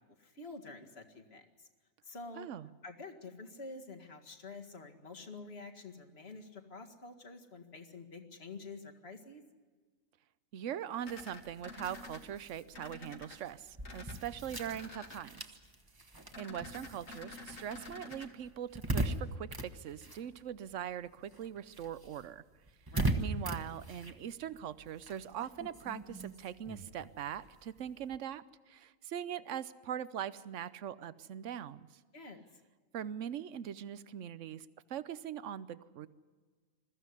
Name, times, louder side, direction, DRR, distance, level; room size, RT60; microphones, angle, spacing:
voice 1, 0.2-1.7 2.0-2.5 2.8-9.4 22.9-23.2 32.1-32.4, left 3 dB, 50° left, 4 dB, 2.2 m, -48 dB
voice 2, 2.4-2.7 10.5-15.4 16.4-22.4 23.2-31.9 32.9-36.1, right 9 dB, 70° right, 16 dB, 1.1 m, -41 dB
sound 1, 11.0-12.2 12.7-13.4 13.8-14.2 14.5-15.2 16.3-18.3, left 3 dB, 80° left, 2.4 m, -49 dB
sound 2, 11.0-20.9 21.2-28.2, right 2 dB, 15° right, 1.3 m, -41 dB
21.5 x 14.5 x 9.7 m, 1.5 s
omnidirectional pair, 1.3 m